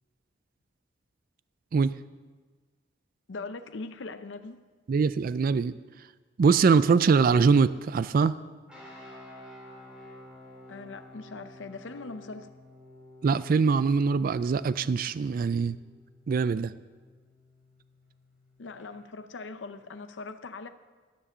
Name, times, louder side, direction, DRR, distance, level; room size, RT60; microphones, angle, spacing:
voice 1, 3.3-4.6 10.7-12.5 18.6-20.7, left 3 dB, 85° left, 10 dB, 0.6 m, -40 dB
voice 2, 4.9-5.7 6.4-8.3 13.2-15.8 16.3-16.7, right 5 dB, 50° right, 15 dB, 0.3 m, -23 dB
sound 1, 8.7-18.9, left 1 dB, 5° right, 3.7 m, -51 dB
13.0 x 7.4 x 6.6 m, 1.4 s
head